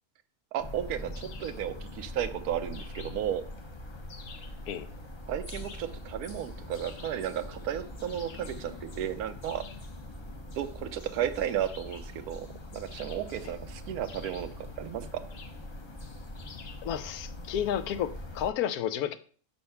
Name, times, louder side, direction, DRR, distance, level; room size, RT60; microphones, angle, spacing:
voice 1, 0.5-3.4 5.3-9.6 10.6-12.5 12.7-15.1, right 10 dB, 85° right, 10 dB, 1.2 m, -34 dB
sound 1, 0.6-18.5, left 1 dB, 30° left, 0.6 m, -43 dB
sound 2, 1.1-1.7 2.7-3.3 4.1-4.6 5.5-6.0 6.7-7.3 8.1-8.6 9.4-9.9 11.7-12.2 12.9-13.5 14.0-14.6 15.3-15.7 16.4-16.9, left 5 dB, 50° left, 0.9 m, -50 dB
voice 2, 16.8-19.2, left 10 dB, 80° left, 11 dB, 1.1 m, -31 dB
5.7 x 4.4 x 5.6 m, 0.43 s
omnidirectional pair, 1.6 m